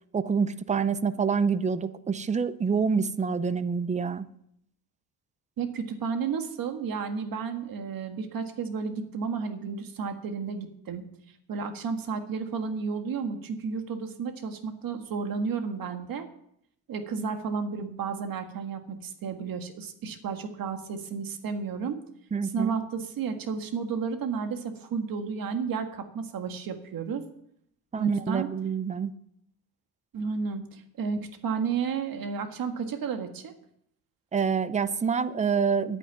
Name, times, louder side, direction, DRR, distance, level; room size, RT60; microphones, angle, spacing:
voice 1, 0.1-4.3 22.3-22.8 27.9-29.1 34.3-36.0, right 6 dB, 15° right, 14 dB, 0.5 m, -27 dB
voice 2, 5.6-11.1 11.5-16.3 16.9-22.0 22.5-27.2 27.9-28.5 30.1-33.5, right 5 dB, 55° right, 6 dB, 1.8 m, -32 dB
10.0 x 9.1 x 9.3 m, 0.72 s
cardioid pair, 165°, 42 cm